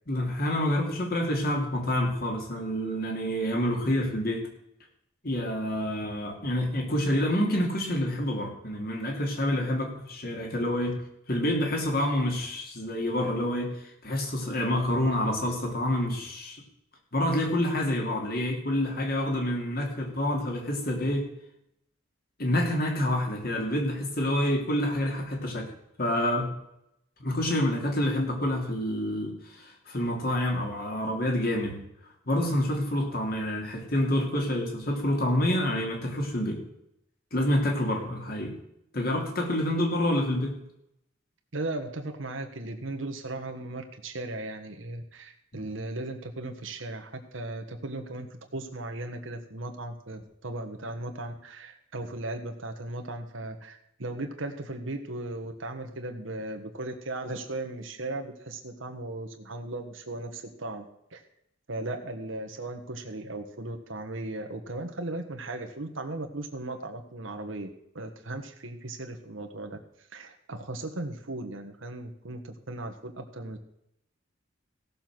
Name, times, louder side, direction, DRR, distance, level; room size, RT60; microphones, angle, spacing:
voice 1, 0.1-4.5 5.2-11.0 11.3-13.7 14.0-16.6 17.1-21.3 22.4-25.7 26.0-26.5 27.2-31.8 32.3-36.6 37.3-38.5 38.9-40.5, left 1 dB, 50° left, 2 dB, 2.8 m, -27 dB
voice 2, 41.5-60.8 61.1-61.2 61.7-67.7 67.9-73.6, right 2 dB, 85° right, 4 dB, 1.4 m, -37 dB
16.0 x 6.9 x 6.1 m, 0.78 s
head